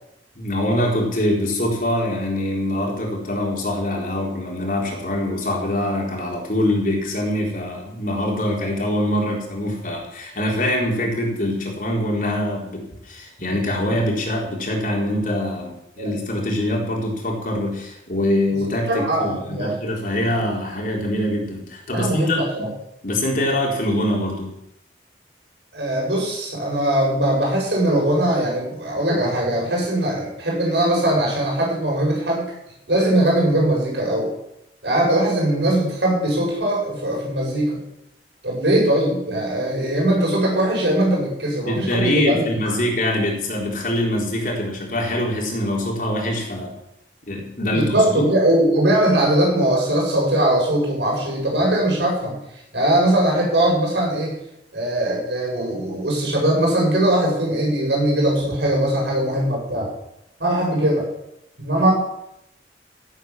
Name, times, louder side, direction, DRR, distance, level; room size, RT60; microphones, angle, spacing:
voice 1, 0.4-22.7 23.0-24.5 41.6-46.7 47.3-48.3, left 1 dB, 50° left, -1 dB, 4.0 m, -24 dB
voice 2, 18.9-19.7 21.9-22.7 25.7-32.5 32.9-34.3 34.8-37.8 38.4-42.5 47.7-52.3 52.7-54.3 54.7-59.9 60.4-61.1 61.6-61.9, right 1 dB, 80° right, -2 dB, 7.6 m, -20 dB
16.0 x 8.9 x 7.4 m, 0.82 s
head